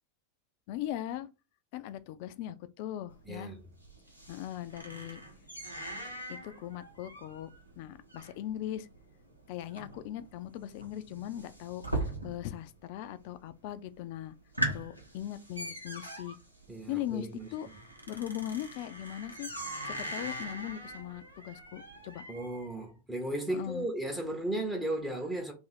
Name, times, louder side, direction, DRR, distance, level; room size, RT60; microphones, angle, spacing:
voice 1, 0.7-1.3 1.7-3.5 4.3-5.2 6.3-7.5 7.8-8.9 9.5-14.4 14.6-16.4 16.9-17.7 18.1-19.5 19.9-22.2 23.5-23.9, left 12 dB, 45° left, 0.3 m, -39 dB
sound 1, 3.1-12.7 12.9-13.5 13.9-14.0 14.3-22.7, right 1 dB, 90° right, 0.9 m, -41 dB
voice 2, 3.3-3.6 16.7-17.5 22.3-25.5, right 1 dB, 10° right, 0.7 m, -35 dB
2.7 x 2.6 x 4.0 m
figure-of-eight pair, 90°, 0 cm